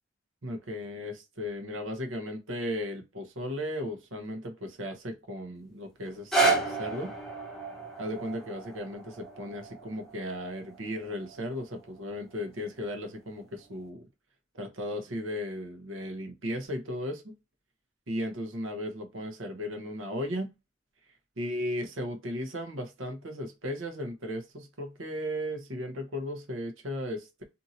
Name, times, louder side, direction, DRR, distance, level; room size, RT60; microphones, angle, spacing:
voice 1, 0.4-7.1 8.0-14.0 14.5-17.3 18.1-20.5 21.4-27.3, equal, 75° right, 0.9 m, -36 dB
sound 1, 6.0-12.1 12.8-12.9, right 3 dB, ahead, 0.6 m, -32 dB
2.7 x 2.6 x 2.7 m
head